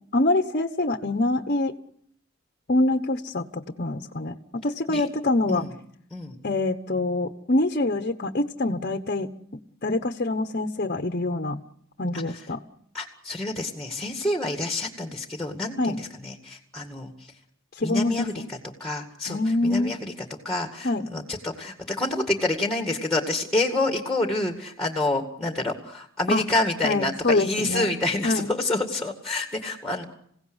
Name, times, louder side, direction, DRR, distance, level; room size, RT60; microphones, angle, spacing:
voice 1, 0.1-1.7 2.7-5.6 6.4-9.3 9.8-11.6 12.0-12.6 15.8-16.0 17.8-18.5 19.3-19.9 20.8-21.1 26.3-26.4 26.8-27.9 28.2-28.5, left 2 dB, 45° left, 6 dB, 1.1 m, -25 dB
voice 2, 12.1-12.5 12.9-17.3 17.8-20.1 20.4-30.0, left 2 dB, 5° left, 5 dB, 2.1 m, -28 dB
27.5 x 17.0 x 8.0 m, 0.69 s
head